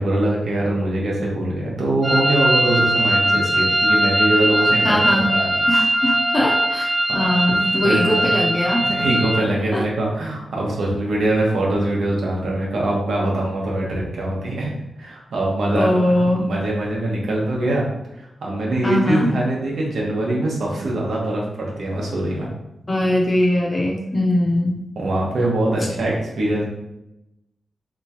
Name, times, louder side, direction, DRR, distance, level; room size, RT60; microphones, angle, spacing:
voice 1, 0.0-5.0 5.3-5.6 7.1-7.2 7.8-8.3 8.8-17.9 18.2-22.5 25.0-26.6, right 1 dB, 80° right, -3 dB, 1.0 m, -23 dB
sound 1, 2.0-9.4, right 1 dB, 20° right, 0.4 m, -20 dB
voice 2, 4.8-5.3 5.7-9.1 9.7-9.8 15.7-16.5 18.8-19.3 22.9-24.8, left 1 dB, 25° left, -1 dB, 0.6 m, -21 dB
3.6 x 2.9 x 2.8 m, 0.88 s
wide cardioid pair, 175°, 0 cm